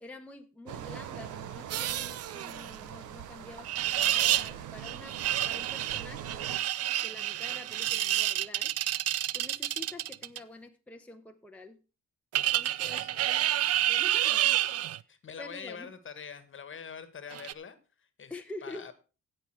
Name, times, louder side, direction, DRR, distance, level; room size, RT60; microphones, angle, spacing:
voice 1, 0.0-5.2 5.4-6.5 7.0-8.7 9.3-11.8 12.5-13.0 13.8-14.6 15.4-15.9 18.3-18.8, left 2 dB, 5° left, 4 dB, 1.0 m, -47 dB
sound 1, 0.7-6.6, right 10 dB, 80° right, 1.0 m, -42 dB
sound 2, 1.7-2.7 3.6-4.5 4.8-10.4 12.3-15.0 17.3-17.5, right 12 dB, 55° right, 0.5 m, -29 dB
voice 2, 15.1-18.3 18.6-18.9, left 6 dB, 40° left, 13 dB, 1.5 m, -44 dB
16.0 x 5.5 x 4.5 m, 0.32 s
cardioid pair, 90°, 30 cm